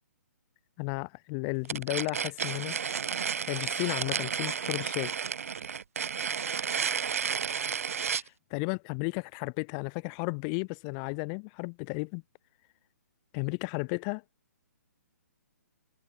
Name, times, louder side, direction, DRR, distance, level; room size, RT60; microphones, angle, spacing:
voice 1, 0.8-2.8 3.5-5.1 8.2-12.2 13.3-14.2, left 40 dB or more, 25° left, 0.9 m, -34 dB
sound 1, 1.7-8.3, right 7 dB, 55° right, 2.6 m, -32 dB
figure-of-eight pair, 130°, 9 cm